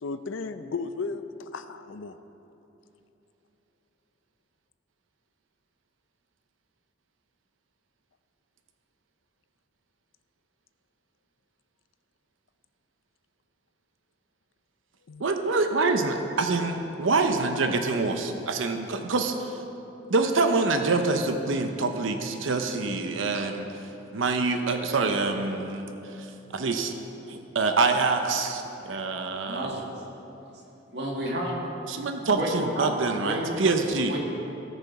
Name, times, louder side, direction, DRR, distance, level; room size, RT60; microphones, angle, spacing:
voice 1, 0.0-2.2 15.1-15.2, left 4 dB, 85° left, 11 dB, 0.5 m, -35 dB
voice 2, 15.2-19.6 20.1-23.7 24.1-25.9 26.5-26.9 27.3-29.7 31.9-34.1, right 3 dB, 85° right, 6 dB, 0.7 m, -26 dB
voice 3, 29.5-29.9 30.9-31.6 32.4-33.6 34.1-34.2, equal, 60° right, -2 dB, 2.0 m, -30 dB
17.5 x 6.8 x 4.8 m, 3.0 s
head